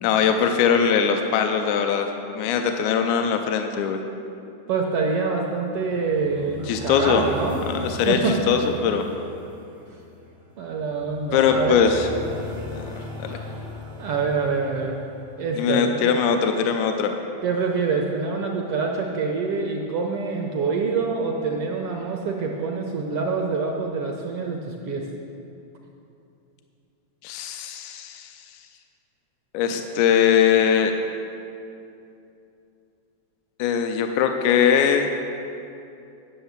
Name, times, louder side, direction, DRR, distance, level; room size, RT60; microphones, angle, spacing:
voice 1, 0.0-2.1 2.4-4.0 6.7-7.3 7.7-9.0 11.3-12.1 12.8-12.9 13.2-13.4 15.6-17.1 27.2-28.3 29.5-30.9 33.6-35.1, left 7 dB, 80° left, 5 dB, 1.9 m, -21 dB
voice 2, 4.7-8.3 10.6-11.8 13.3-13.5 14.0-15.0 15.4-16.1 17.4-25.0, right 4 dB, 70° right, 1 dB, 1.4 m, -26 dB
sound 1, 5.8-15.9, left 1 dB, 35° right, 0.4 m, -38 dB
10.0 x 6.6 x 8.0 m, 2.7 s
omnidirectional pair, 3.5 m